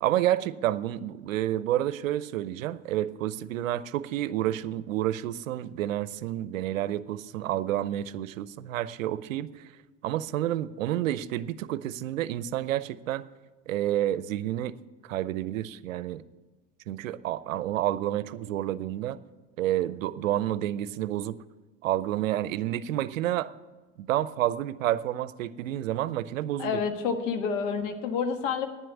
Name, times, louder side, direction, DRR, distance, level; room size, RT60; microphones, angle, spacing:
voice 1, 0.0-9.5 10.0-13.2 13.7-14.8 15.0-16.2 16.9-19.2 19.6-21.4 21.8-23.5 24.0-26.8, right 13 dB, 90° right, 16 dB, 0.6 m, -29 dB
voice 2, 26.6-28.7, left 6 dB, 75° left, 7 dB, 1.5 m, -29 dB
10.0 x 7.7 x 8.3 m, 1.3 s
hypercardioid pair, 90°, 38 cm